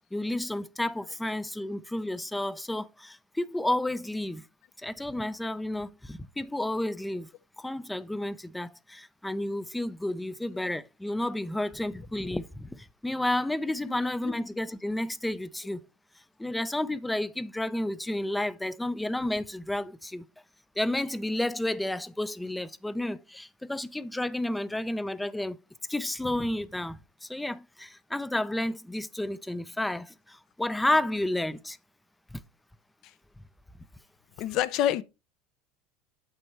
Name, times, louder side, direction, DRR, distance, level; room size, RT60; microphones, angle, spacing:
voice 1, 0.1-4.4 4.8-7.3 7.6-15.8 16.4-20.3 20.8-25.6 25.9-31.8 32.3-32.4, left 1 dB, 5° left, 0.4 m, -31 dB
voice 2, 34.4-35.0, left 11 dB, 55° left, 0.6 m, -27 dB
8.1 x 5.3 x 4.4 m
supercardioid pair, 140°, 0 cm